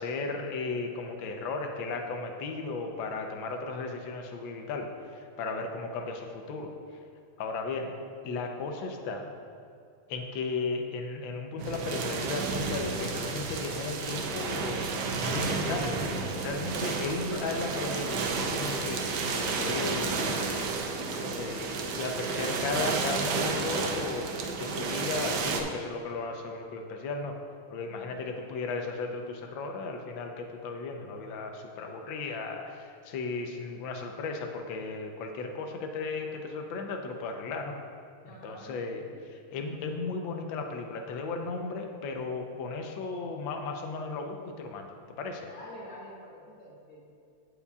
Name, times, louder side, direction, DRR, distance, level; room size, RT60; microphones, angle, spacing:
voice 1, 0.0-4.9 5.2-6.7 7.4-7.9 8.2-9.3 10.1-20.5 21.1-24.3 24.6-27.4 27.7-37.7 38.4-39.0 39.3-44.9 45.2-45.5, left 3 dB, 70° left, 3 dB, 1.5 m, -35 dB
sound 1, 11.6-25.6, right 4 dB, 65° right, 1.1 m, -31 dB
voice 2, 27.9-28.5 38.2-39.2 45.5-47.1, left 1 dB, 45° left, -5 dB, 1.8 m, -48 dB
16.5 x 5.6 x 2.4 m, 2.5 s
omnidirectional pair, 2.3 m